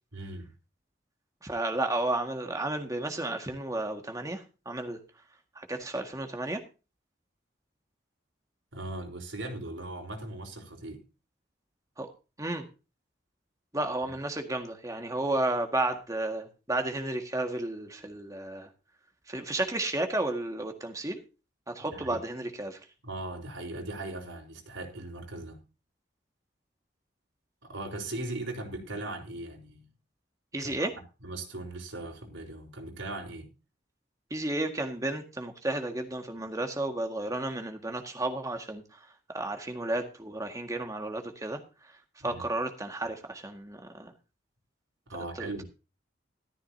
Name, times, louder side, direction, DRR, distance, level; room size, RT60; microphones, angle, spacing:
voice 1, 0.1-0.5 8.7-11.0 14.0-14.1 21.9-22.2 23.0-25.6 27.6-29.9 30.6-30.9 31.2-33.5 42.2-42.4 45.1-45.6, right 2 dB, 80° right, 4.1 m, -39 dB
voice 2, 1.4-5.0 5.6-6.6 12.0-12.1 12.4-12.7 13.7-18.7 19.3-21.2 21.7-22.8 30.5-30.9 34.3-38.8 39.3-41.6 42.2-44.1 45.4-45.6, right 2 dB, 15° right, 1.8 m, -32 dB
14.0 x 14.0 x 2.8 m
head